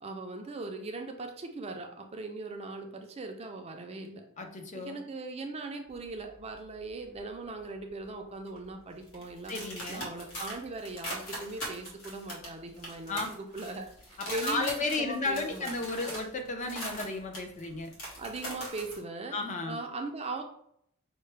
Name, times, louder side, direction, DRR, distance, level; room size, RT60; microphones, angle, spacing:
voice 1, 0.0-4.3 4.7-9.5 9.9-13.9 14.3-15.7 18.2-19.4 19.7-20.4, right 3 dB, 30° right, 4 dB, 0.5 m, -39 dB
voice 2, 4.4-5.0 9.5-10.1 13.1-13.3 14.2-17.9 19.3-19.8, left 3 dB, 35° left, 4 dB, 0.5 m, -33 dB
sound 1, 5.9-7.3 7.6-8.0 8.5-19.0, equal, 70° left, 1.6 m, -41 dB
5.5 x 2.2 x 3.3 m, 0.68 s
head